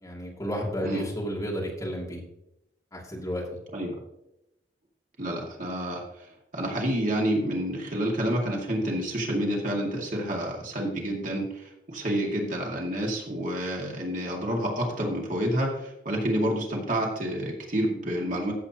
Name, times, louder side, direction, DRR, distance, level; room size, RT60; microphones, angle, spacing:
voice 1, 0.0-2.2 2.9-3.4, equal, 20° left, -3 dB, 2.6 m, -32 dB
voice 2, 5.2-6.0 6.5-11.5 11.9-18.5, right 1 dB, 45° right, -1 dB, 2.1 m, -28 dB
14.5 x 7.9 x 2.9 m, 0.85 s
head